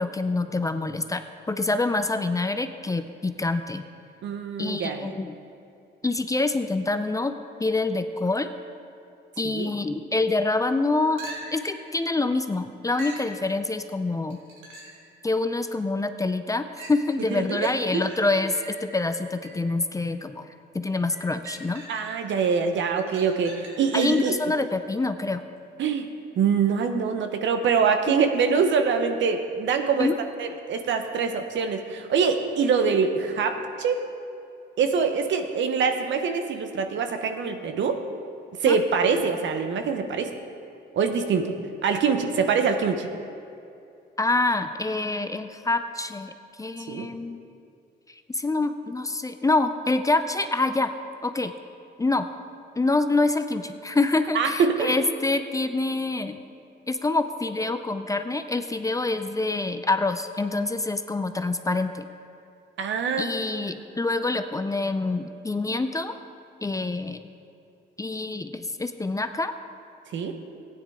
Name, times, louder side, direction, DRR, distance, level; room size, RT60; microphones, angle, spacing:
voice 1, 0.0-3.8 4.6-5.3 6.0-7.3 7.6-8.5 9.4-11.2 11.5-14.4 15.2-20.5 20.7-21.8 23.9-25.4 28.1-28.2 30.0-30.1 38.7-38.8 44.2-47.5 48.3-50.9 51.2-51.5 52.0-52.3 52.8-56.4 56.9-62.0 63.2-66.2 66.6-67.3 68.0-69.5, left 3 dB, 15° left, 9 dB, 0.5 m, -26 dB
voice 2, 4.2-5.1 9.4-9.7 17.3-18.0 21.9-24.3 25.8-26.1 26.4-30.1 30.4-34.0 34.8-38.0 38.6-40.3 40.9-41.6 41.8-43.1 46.9-47.1 54.3-54.9 62.8-63.3 70.1-70.3, right 5 dB, 70° right, 6 dB, 1.0 m, -24 dB
sound 1, 11.2-11.7 13.0-13.3 14.3-15.1 15.6-15.7 16.8-19.8 21.1-22.3 22.7-24.4 28.2-28.3, right 1 dB, 85° right, 2.1 m, -43 dB
15.0 x 9.6 x 3.6 m, 2.6 s
cardioid pair, 90°, 20 cm